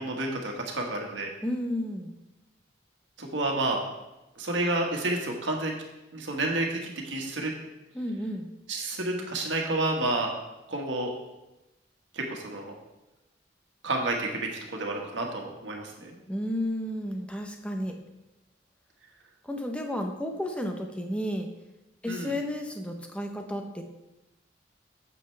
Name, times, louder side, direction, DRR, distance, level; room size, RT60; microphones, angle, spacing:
voice 1, 0.0-1.3 3.2-3.8 4.4-5.7 6.1-7.5 8.7-10.3 10.7-11.1 12.1-12.7 13.8-16.1 22.1-22.3, right 2 dB, 75° right, 1 dB, 1.6 m, -30 dB
voice 2, 1.4-2.1 7.9-8.5 16.3-17.9 19.4-21.5 22.0-23.8, left 1 dB, 5° left, 3 dB, 0.8 m, -32 dB
8.9 x 7.8 x 3.3 m, 1.0 s
head